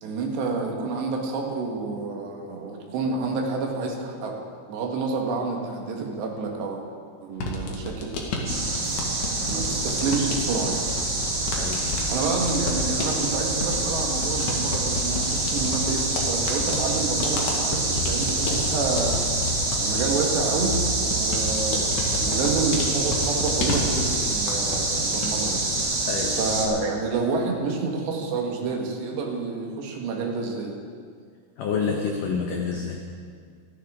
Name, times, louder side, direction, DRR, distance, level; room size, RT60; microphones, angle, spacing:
voice 1, 0.0-6.8 7.2-8.1 8.4-8.9 9.5-10.9 11.9-19.4 19.8-26.1 26.4-30.8, right 4 dB, 70° right, 1 dB, 3.6 m, -29 dB
sound 1, 7.3-24.9 25.1-25.8, left 2 dB, 55° left, 2.4 m, -32 dB
sound 2, 8.4-26.7, right 2 dB, 55° right, 1.1 m, -26 dB
voice 2, 11.6-11.9 26.1-26.4 31.6-33.0, left 5 dB, 90° left, 1 dB, 1.8 m, -28 dB
26.5 x 10.5 x 3.6 m, 2.1 s
omnidirectional pair, 5.3 m